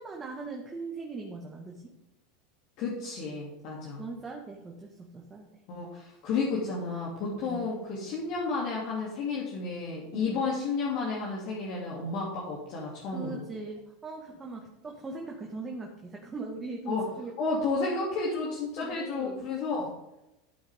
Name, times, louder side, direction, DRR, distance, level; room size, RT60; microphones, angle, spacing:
voice 1, 0.0-1.9 4.0-5.6 7.3-7.6 10.1-10.4 13.1-17.3 18.8-19.5, right 3 dB, 20° right, 0 dB, 1.8 m, -40 dB
voice 2, 2.8-4.0 5.7-13.5 16.9-17.0 17.4-19.9, left 4 dB, 55° left, -4 dB, 2.8 m, -32 dB
12.5 x 8.8 x 3.7 m, 0.92 s
hypercardioid pair, 85°, 0 cm